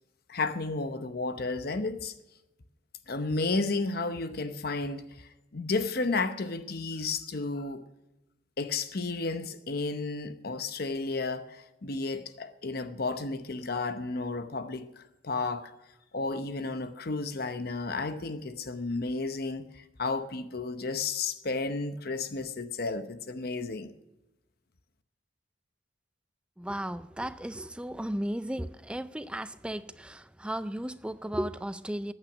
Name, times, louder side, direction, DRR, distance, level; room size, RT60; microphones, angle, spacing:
voice 1, 0.3-2.1 3.1-7.8 8.6-15.7 16.1-23.9, left 3 dB, 55° left, 0.8 m, -32 dB
voice 2, 26.6-32.1, right 1 dB, 5° right, 0.4 m, -35 dB
14.5 x 8.9 x 6.1 m
head